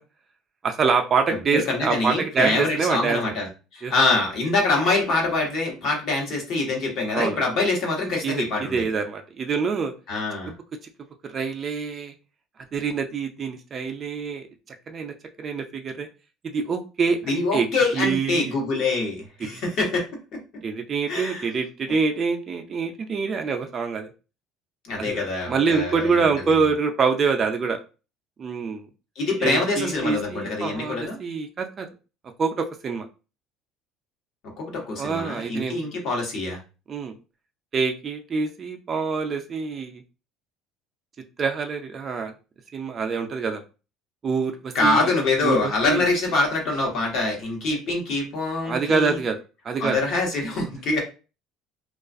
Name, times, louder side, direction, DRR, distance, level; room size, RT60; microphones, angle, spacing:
voice 1, 0.6-3.2 3.8-3.9 7.1-7.4 8.2-9.9 11.3-12.1 12.7-14.4 14.9-16.1 16.4-17.7 17.9-18.6 19.5-19.6 20.6-24.1 25.0-27.8 28.4-28.9 29.4-31.9 32.4-33.1 35.0-35.8 36.9-37.1 37.7-40.0 41.4-42.3 42.7-43.6 44.2-45.1 45.4-46.1 48.6-49.4 49.6-50.0, right 5 dB, 35° right, 4 dB, 0.3 m, -25 dB
voice 2, 1.5-3.5 3.7-8.7 10.1-10.5 17.3-20.0 20.3-20.4 21.1-21.5 24.8-26.2 29.2-31.2 34.6-36.6 44.7-49.2 49.8-51.0, left 3 dB, 60° left, 0 dB, 1.0 m, -24 dB
2.3 x 2.3 x 2.4 m, 0.32 s
cardioid pair, 115°, 0 cm